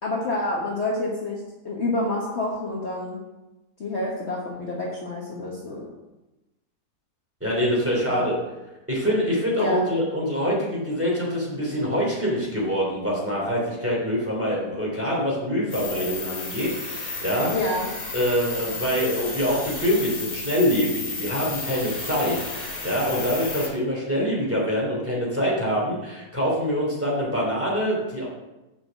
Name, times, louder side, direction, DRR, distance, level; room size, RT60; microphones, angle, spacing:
voice 1, 0.0-3.2 3.8-5.9 8.1-8.2 9.5-9.9 17.5-17.9, left 2 dB, 45° left, -3 dB, 1.5 m, -28 dB
voice 2, 7.4-8.4 8.9-17.6 18.1-28.3, equal, 10° right, -5 dB, 3.0 m, -25 dB
sound 1, 15.7-23.7, left 4 dB, 70° left, 2.7 m, -33 dB
6.8 x 5.6 x 7.0 m, 1.0 s
omnidirectional pair, 1.7 m